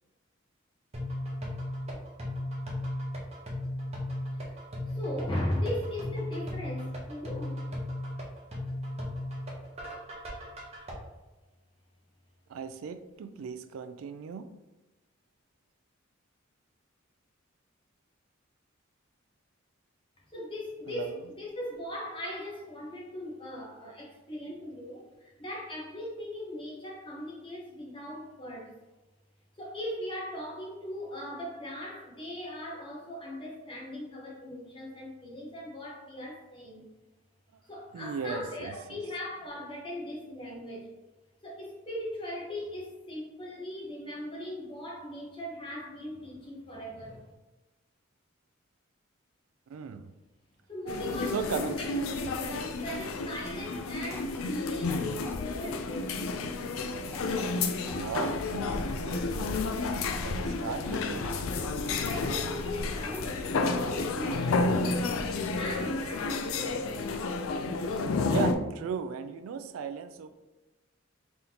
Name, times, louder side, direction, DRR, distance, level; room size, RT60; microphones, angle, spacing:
sound 1, 0.9-10.9, left 1 dB, 30° right, 0.9 m, -36 dB
voice 1, 4.9-7.7 20.3-28.7 29.6-36.8 37.7-40.9 41.4-47.3 50.7-55.1 55.4-56.2 61.8-65.2 65.6-67.3, left 1 dB, 25° left, -3 dB, 1.1 m, -39 dB
voice 2, 12.5-14.5 20.9-21.2 37.9-39.0 49.7-50.1 51.3-51.8 57.1-57.5 57.9-61.3 68.2-70.4, right 6 dB, 80° right, 10 dB, 0.3 m, -37 dB
sound 2, 50.9-68.5, left 3 dB, 80° left, 0.4 m, -31 dB
sound 3, 54.0-64.7 65.0-65.7 66.0-66.1, left 2 dB, 10° left, 0.3 m, -50 dB
3.9 x 3.5 x 2.9 m, 1.1 s
head